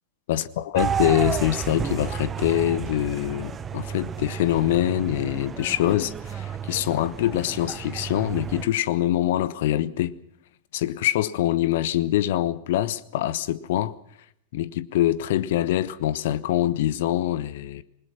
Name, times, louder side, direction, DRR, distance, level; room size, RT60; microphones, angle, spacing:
voice 1, 0.3-10.2 10.7-13.9 14.5-17.8, left 13 dB, 55° left, 0.9 m, -24 dB
sound 1, 0.7-8.7, right 7 dB, 20° right, 1.2 m, -32 dB
27.5 x 20.5 x 5.9 m
figure-of-eight pair, 90°, 0 cm